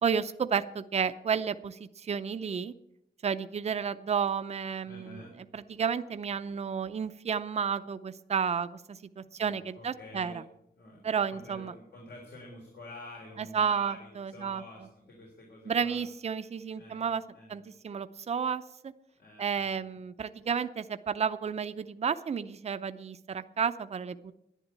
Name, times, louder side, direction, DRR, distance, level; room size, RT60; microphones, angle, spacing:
voice 1, 0.0-2.7 3.2-5.2 5.5-10.4 11.0-11.7 13.4-14.6 15.7-17.2 17.5-18.9 19.4-24.3, right 6 dB, 40° right, 11 dB, 0.5 m, -32 dB
voice 2, 4.8-5.3 9.4-10.4 10.7-16.0 16.7-17.1 17.3-17.6 19.2-20.0, left 2 dB, 75° left, -1 dB, 3.6 m, -48 dB
11.0 x 11.0 x 8.3 m, 0.82 s
wide cardioid pair, 175°, 17 cm